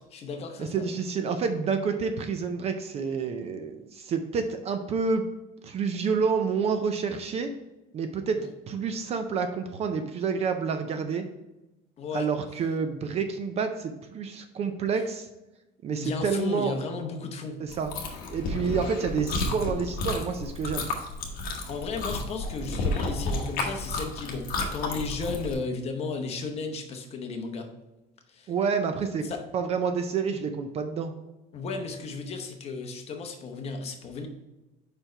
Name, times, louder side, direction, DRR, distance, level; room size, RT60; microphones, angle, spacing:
voice 1, 0.0-0.9 8.3-8.5 12.0-12.3 16.0-17.6 21.7-27.7 28.3-28.5 29.2-29.4 31.5-34.3, left 4 dB, 30° left, 4 dB, 0.8 m, -34 dB
voice 2, 0.6-5.3 5.6-7.5 7.9-11.3 12.1-15.3 15.8-16.7 17.6-17.9 18.3-20.9 28.5-29.3 29.5-31.1, right 5 dB, 35° right, 7 dB, 0.4 m, -28 dB
Chewing mastication, 17.7-25.5, left 2 dB, 50° left, 1.1 m, -32 dB
5.2 x 4.5 x 4.3 m, 1.0 s
cardioid pair, 160°, 19 cm